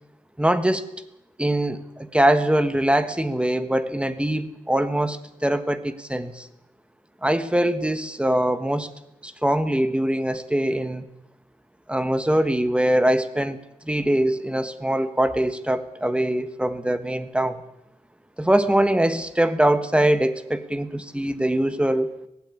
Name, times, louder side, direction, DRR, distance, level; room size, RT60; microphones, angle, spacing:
voice 1, 0.4-0.8 1.4-6.5 7.2-8.9 9.2-11.0 11.9-13.6 13.8-17.6 18.4-22.1, right 1 dB, 5° right, 11 dB, 1.3 m, -22 dB
18.5 x 16.0 x 9.8 m, 0.85 s
wide cardioid pair, 125°, 15 cm